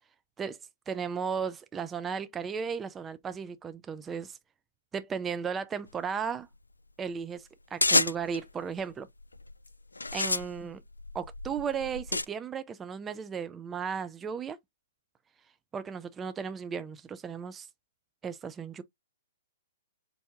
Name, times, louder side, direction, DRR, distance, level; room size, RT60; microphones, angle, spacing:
voice 1, 0.9-4.4 4.9-6.5 7.0-9.1 10.1-10.8 11.1-14.6 15.7-17.7 18.2-18.8, right 6 dB, 15° right, 0.4 m, -35 dB
sound 1, 7.8-8.4 9.2-9.5 10.0-12.2, left 3 dB, 80° left, 0.3 m, -28 dB
4.3 x 2.7 x 3.3 m
figure-of-eight pair, 115°, 0 cm